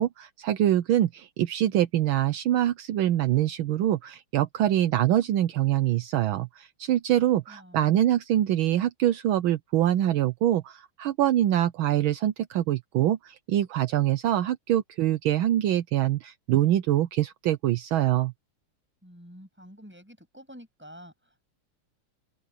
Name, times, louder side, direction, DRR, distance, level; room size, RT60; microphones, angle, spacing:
voice 1, 0.0-18.3, right 12 dB, 75° right, 1.5 m, -24 dB
voice 2, 7.5-8.0 19.0-21.4, equal, 5° right, 7.8 m, -49 dB
open air
omnidirectional pair, 2.4 m